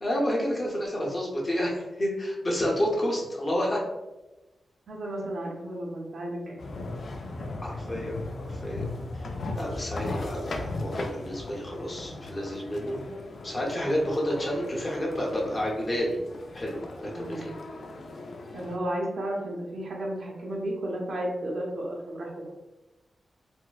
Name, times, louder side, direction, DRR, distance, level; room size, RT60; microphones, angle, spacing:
voice 1, 0.0-3.8 7.6-8.2 8.5-8.8 9.1-9.3 9.5-13.0 13.4-16.2 16.5-17.5, equal, 30° left, -3 dB, 0.8 m, -30 dB
voice 2, 4.9-6.6 17.0-17.5 18.5-22.3, right 1 dB, 70° right, -3 dB, 0.8 m, -33 dB
sound 1, 6.6-18.8, left 2 dB, 55° left, 0.4 m, -37 dB
4.3 x 2.1 x 2.3 m, 1.0 s
wide cardioid pair, 135°, 0 cm